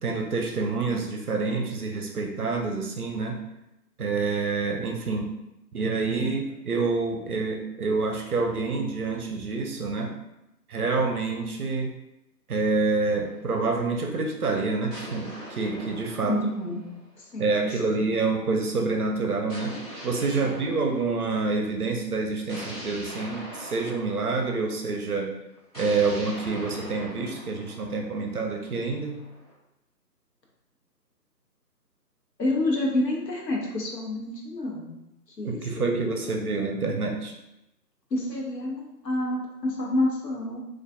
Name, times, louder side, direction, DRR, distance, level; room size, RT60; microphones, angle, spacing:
voice 1, 0.0-3.4 4.0-5.3 5.7-10.1 10.7-11.9 12.5-16.4 17.4-19.8 20.0-25.3 25.8-29.2 35.4-37.3, right 3 dB, 65° right, 2 dB, 0.5 m, -27 dB
sound 1, 13.0-14.1 14.9-17.5 19.5-21.6 22.5-24.8 25.7-29.5, equal, 25° left, 0.8 m, -42 dB
voice 2, 16.2-16.8 17.2-18.1 20.4-20.7 32.4-35.0 35.4-36.6 38.1-40.6, left 1 dB, 75° left, -1 dB, 0.9 m, -29 dB
2.4 x 2.2 x 2.4 m, 0.89 s
figure-of-eight pair, 155°, 50 cm